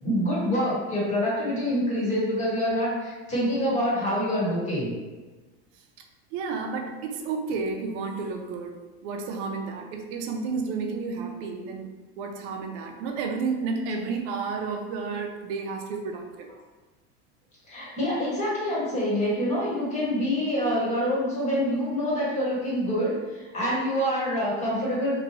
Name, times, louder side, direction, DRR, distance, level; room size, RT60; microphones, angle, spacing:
voice 1, 0.0-4.9 17.7-25.2, equal, 20° left, -7 dB, 1.1 m, -26 dB
voice 2, 6.3-16.5, right 4 dB, 50° right, 3 dB, 0.5 m, -31 dB
2.9 x 2.2 x 2.8 m, 1.2 s
supercardioid pair, 150°, 31 cm